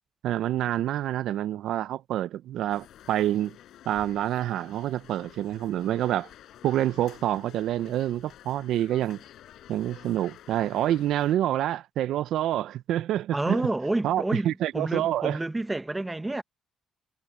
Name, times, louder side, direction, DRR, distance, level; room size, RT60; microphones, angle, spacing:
voice 1, 0.2-3.6 3.9-6.3 6.6-9.2 9.7-13.7 14.0-15.4, right 12 dB, 75° right, 0.4 m, -27 dB
sound 1, 2.7-11.4, left 12 dB, 65° left, 7.2 m, -50 dB
voice 2, 13.3-16.4, right 2 dB, 10° right, 0.7 m, -29 dB
cardioid pair, 155°, 0 cm